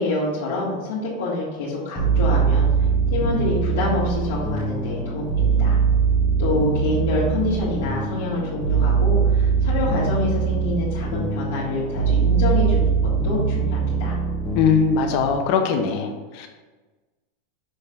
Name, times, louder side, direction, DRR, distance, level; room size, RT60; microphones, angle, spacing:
voice 1, 0.0-2.7 3.1-5.8 6.4-12.9 13.2-14.2, left 2 dB, 80° left, -7 dB, 1.8 m, -26 dB
sound 1, 2.0-15.3, right 5 dB, 15° left, 1.2 m, -22 dB
voice 2, 14.5-16.5, left 6 dB, 55° left, 4 dB, 0.8 m, -21 dB
6.3 x 3.3 x 5.8 m, 1.3 s
supercardioid pair, 140°, 0 cm